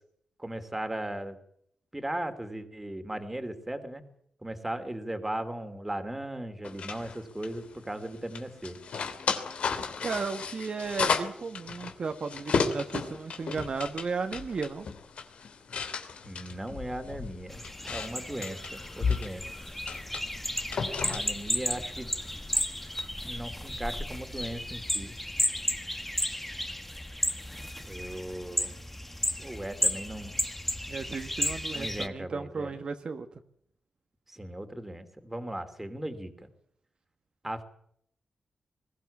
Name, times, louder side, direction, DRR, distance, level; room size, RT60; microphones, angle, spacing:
voice 1, 0.4-1.4 1.9-4.0 4.4-8.8 16.2-19.4 21.1-22.1 23.3-25.2 27.8-28.8 29.4-30.4 31.7-32.7 34.3-36.5 37.4-37.6, right 1 dB, 10° right, 8 dB, 2.8 m, -37 dB
sound 1, 6.6-23.1, left 5 dB, 70° left, 2.8 m, -35 dB
voice 2, 10.0-14.9 30.9-33.3, right 4 dB, 50° right, 6 dB, 1.5 m, -34 dB
sound 2, 17.5-32.1, left 1 dB, 10° left, 1.5 m, -33 dB
22.0 x 16.0 x 8.5 m, 0.69 s
wide cardioid pair, 120°, 2 cm